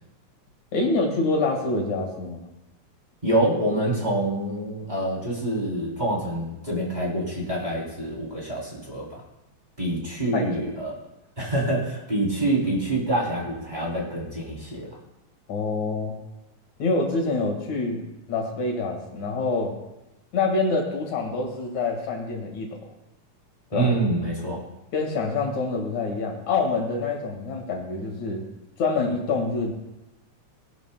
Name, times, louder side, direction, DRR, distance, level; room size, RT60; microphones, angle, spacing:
voice 1, 0.7-2.5 10.3-10.7 15.5-16.2 16.8-18.0 18.3-19.7 20.3-22.8 23.7-23.9 24.9-28.4 28.8-29.7, left 3 dB, 75° left, 1 dB, 3.3 m, -26 dB
voice 2, 3.2-9.2 9.8-11.0 11.4-14.9 23.7-24.6, right 1 dB, 15° right, -5 dB, 3.1 m, -26 dB
19.5 x 11.0 x 2.2 m, 0.97 s
omnidirectional pair, 3.3 m